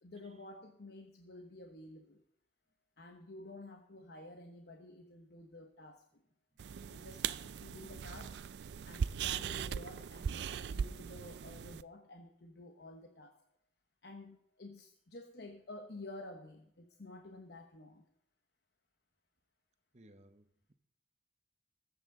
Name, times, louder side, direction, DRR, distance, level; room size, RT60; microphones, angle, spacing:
voice 1, 0.0-2.2 3.0-6.2 6.9-8.4 8.8-13.4 14.0-18.1, left 2 dB, 65° left, 1.0 m, -51 dB
sound 1, 6.6-11.8, right 7 dB, 70° right, 0.3 m, -39 dB
voice 2, 19.9-20.7, right 1 dB, 40° right, 0.8 m, -61 dB
20.5 x 8.2 x 3.8 m
head